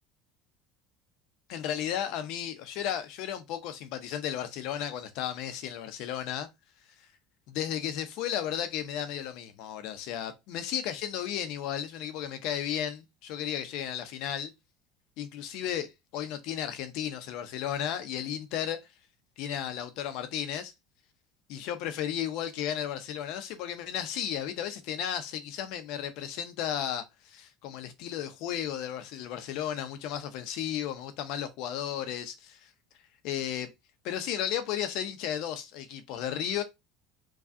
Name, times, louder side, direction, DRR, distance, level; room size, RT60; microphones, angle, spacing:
voice 1, 1.5-6.5 7.5-14.5 15.2-18.8 19.4-20.7 21.5-32.7 33.2-33.7 34.0-36.6, left 10 dB, 65° left, 0.7 m, -34 dB
4.8 x 2.3 x 2.6 m
cardioid pair, 140°, 0 cm